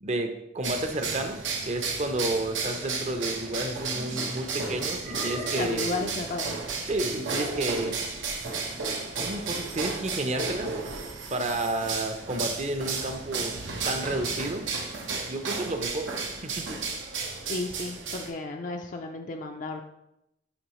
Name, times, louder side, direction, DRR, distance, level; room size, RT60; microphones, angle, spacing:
voice 1, 0.0-6.1 6.9-7.9 9.2-10.8 11.3-13.5 13.9-14.7 15.3-16.1 16.4-16.8, right 2 dB, 35° right, 6 dB, 0.6 m, -31 dB
sound 1, 0.6-18.3, right 4 dB, 90° right, 1.1 m, -33 dB
sound 2, 3.8-4.3 5.0-5.9 7.3-7.9, equal, 65° right, 2.2 m, -38 dB
voice 2, 5.5-6.6 17.5-19.8, left 3 dB, 45° left, 3 dB, 0.4 m, -33 dB
10.0 x 3.5 x 3.0 m, 0.84 s
head